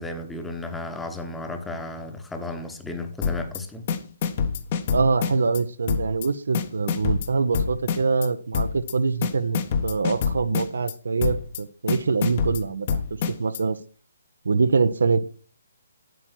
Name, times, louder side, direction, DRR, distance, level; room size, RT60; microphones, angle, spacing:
voice 1, 0.0-3.9, left 2 dB, 5° left, 1.2 m, -33 dB
sound 1, 3.2-3.6 3.9-5.6 5.9-6.3 6.5-8.3 8.5-8.9 9.2-10.9 11.2-11.6 11.9-13.6, left 6 dB, 35° left, 1.2 m, -26 dB
voice 2, 4.9-13.0 13.3-13.8 14.4-15.3, right 4 dB, 60° right, 0.8 m, -24 dB
9.9 x 9.2 x 4.5 m
figure-of-eight pair, 135°, 0 cm